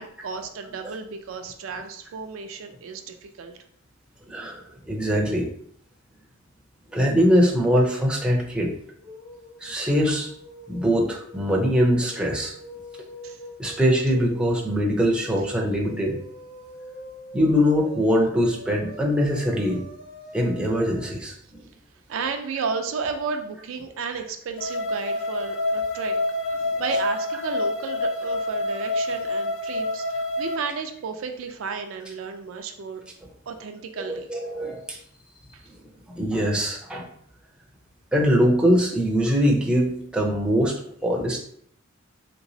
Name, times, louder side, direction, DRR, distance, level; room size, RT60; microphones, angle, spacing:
voice 1, 0.0-3.5 13.2-13.4 13.7-13.8 22.1-26.2 26.8-33.0 33.5-34.3 35.5-35.6, right 5 dB, 70° right, 6 dB, 0.4 m, -33 dB
voice 2, 4.3-5.4 6.9-8.7 9.6-10.3 10.7-12.5 13.6-16.2 17.3-19.8 20.3-21.3 34.1-35.0 36.1-37.1 38.1-40.7 41.0-41.4, equal, 5° right, -1 dB, 0.6 m, -22 dB
sound 1, 9.0-21.0, right 1 dB, 55° left, 1.2 m, -43 dB
sound 2, 24.6-30.6, left 2 dB, 80° left, 0.5 m, -27 dB
3.4 x 2.9 x 2.7 m, 0.63 s
head